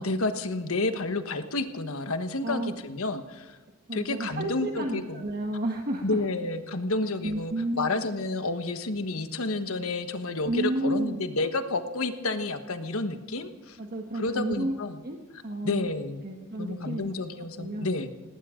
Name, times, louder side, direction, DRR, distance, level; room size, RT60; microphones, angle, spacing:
voice 1, 0.0-3.6 3.9-5.2 6.0-13.8 14.1-15.0 15.6-16.2 16.6-18.1, left 2 dB, 65° left, 8 dB, 1.4 m, -30 dB
voice 2, 3.9-6.2 7.2-7.9 10.4-11.2 13.8-15.2 15.4-16.0 16.2-17.2 17.6-17.9, right 1 dB, 45° right, 2 dB, 1.5 m, -31 dB
18.5 x 18.0 x 3.8 m, 1.3 s
head